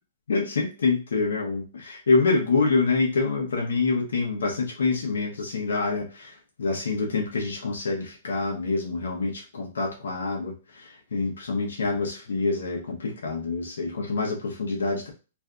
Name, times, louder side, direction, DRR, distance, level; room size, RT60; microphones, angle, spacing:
voice 1, 0.3-15.1, left 3 dB, 85° left, -1 dB, 0.8 m, -26 dB
2.6 x 2.3 x 3.7 m, 0.33 s
hypercardioid pair, 130°, 0 cm